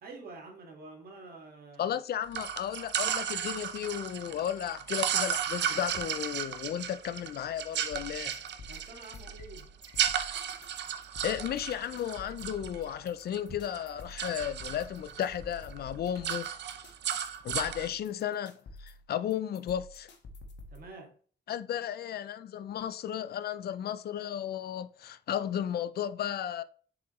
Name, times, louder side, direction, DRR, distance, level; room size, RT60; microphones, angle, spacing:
voice 1, 0.0-2.0 8.7-9.7 20.7-21.2, right 3 dB, 55° right, 1.9 m, -48 dB
voice 2, 1.8-8.4 11.2-16.5 17.4-18.5 18.8-20.1 21.5-26.6, left 10 dB, 60° left, 0.4 m, -34 dB
Drawer open or close, 2.1-3.5 5.1-6.3 7.6-7.7 8.5-8.8 9.1-9.5 9.9-10.1 10.6-10.7 10.9-11.1 12.1-14.0 15.2-16.5, equal, 20° right, 3.3 m, -55 dB
sound 1, 2.3-13.4 13.7-15.2 15.5-15.8 16.0-17.9, right 9 dB, 75° right, 0.7 m, -34 dB
sound 2, 7.9-20.9, left 2 dB, 80° left, 1.3 m, -49 dB
7.1 x 4.9 x 3.1 m
wide cardioid pair, 175°, 18 cm